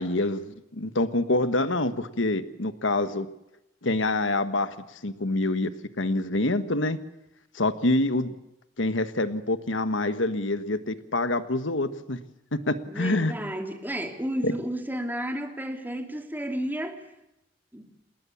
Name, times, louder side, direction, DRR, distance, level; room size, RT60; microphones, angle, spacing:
voice 1, 0.0-3.3 3.8-4.7 5.0-5.7 6.0-7.0 7.5-8.3 8.8-12.2 12.5-13.3 14.4-14.5, left 2 dB, 80° left, 11 dB, 1.5 m, -26 dB
voice 2, 12.9-17.0 17.7-17.9, equal, 10° right, 4 dB, 3.0 m, -32 dB
28.0 x 20.0 x 7.2 m, 0.87 s
head